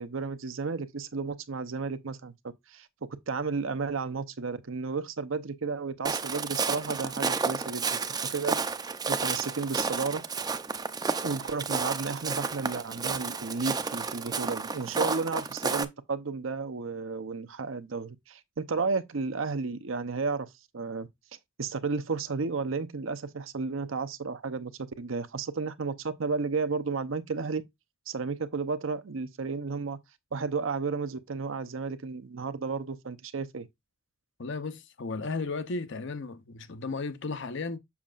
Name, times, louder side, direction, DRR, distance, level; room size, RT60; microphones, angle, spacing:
voice 1, 0.0-2.3 2.7-8.8 9.1-10.2 11.2-21.1 21.6-27.6 28.1-30.0 30.3-33.7, right 4 dB, 80° right, 0.7 m, -33 dB
Walk footsteps, 6.0-15.8, right 4 dB, 20° right, 0.5 m, -31 dB
voice 2, 34.4-37.8, left 3 dB, 65° left, 0.8 m, -34 dB
7.2 x 6.2 x 2.4 m
head